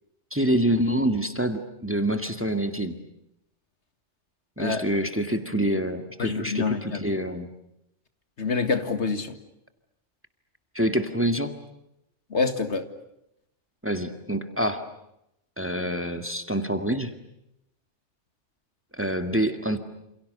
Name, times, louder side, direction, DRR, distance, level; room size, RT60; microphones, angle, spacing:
voice 1, 0.3-3.0 4.6-7.5 10.7-11.6 13.8-14.8 15.6-17.1 18.9-19.8, right 1 dB, 10° right, 7 dB, 2.0 m, -26 dB
voice 2, 6.2-7.0 8.4-9.4 12.3-12.9, left 4 dB, 65° left, 9 dB, 2.2 m, -26 dB
28.5 x 28.5 x 6.8 m, 0.82 s
omnidirectional pair, 1.2 m